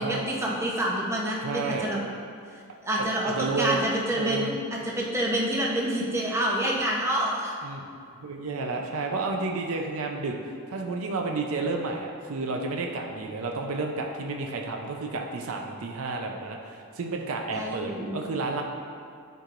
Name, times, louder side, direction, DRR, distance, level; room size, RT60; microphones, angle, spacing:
voice 1, 0.0-2.0 2.8-7.5 17.5-18.1, right 1 dB, 10° right, -4 dB, 0.8 m, -27 dB
voice 2, 1.4-1.9 3.0-3.8 4.2-4.6 7.6-18.6, right 3 dB, 70° right, 2 dB, 0.5 m, -31 dB
10.5 x 4.7 x 2.5 m, 2.3 s
head